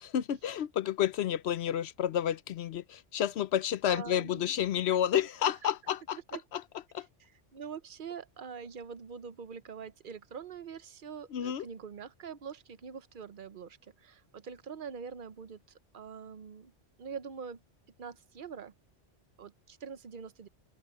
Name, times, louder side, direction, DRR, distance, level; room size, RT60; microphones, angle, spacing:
voice 1, 0.0-6.2 6.5-6.6 6.9-7.1 11.3-11.7, left 10 dB, 65° left, 0.9 m, -30 dB
voice 2, 3.9-4.5 5.1-5.5 6.3-6.4 7.5-15.6 15.9-16.7 17.0-17.6 18.0-18.7 19.4-20.5, right 6 dB, 50° right, 0.9 m, -44 dB
open air
omnidirectional pair, 1.2 m